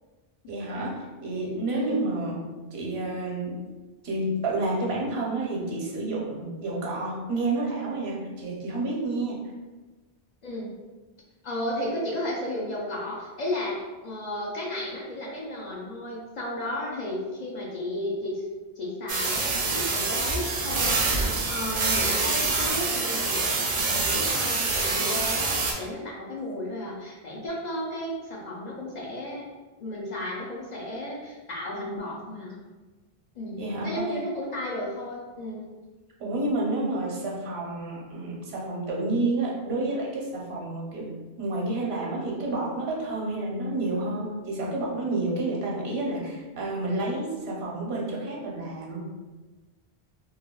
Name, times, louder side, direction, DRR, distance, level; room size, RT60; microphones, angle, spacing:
voice 1, 0.5-2.4 2.7-3.6 4.0-9.4 33.6-34.0 36.2-41.1 41.4-49.0, right 2 dB, 85° right, -3 dB, 1.0 m, -29 dB
voice 2, 10.4-10.7 11.4-18.4 18.8-29.5 29.8-32.6 33.4-35.6, left 1 dB, 55° left, -3 dB, 0.5 m, -34 dB
sound 1, 19.1-25.7, right 3 dB, 55° right, 0.6 m, -26 dB
3.2 x 2.2 x 2.2 m, 1.3 s
omnidirectional pair, 1.0 m